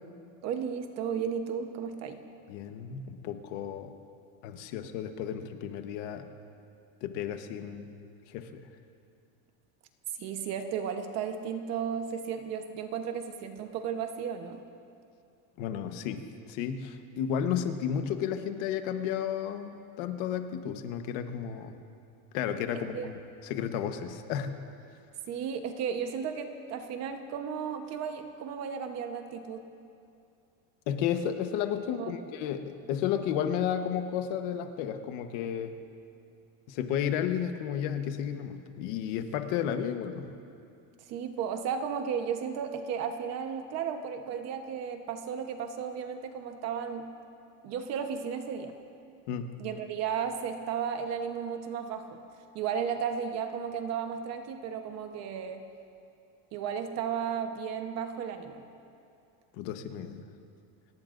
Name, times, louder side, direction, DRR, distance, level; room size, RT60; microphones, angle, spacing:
voice 1, 0.4-2.3 10.2-14.6 22.7-23.1 25.3-29.7 31.9-32.1 41.1-47.1 47.6-48.8 49.6-52.2 52.5-55.6 56.5-58.6, right 7 dB, 40° right, 6 dB, 1.1 m, -34 dB
voice 2, 2.5-3.9 4.4-6.2 7.0-7.9 8.3-8.7 15.6-21.8 22.3-24.5 30.9-35.8 36.7-40.3 49.3-49.5 59.5-60.2, left 9 dB, 65° left, 7 dB, 1.2 m, -33 dB
29.0 x 18.0 x 2.6 m, 2.6 s
cardioid pair, 175°, 41 cm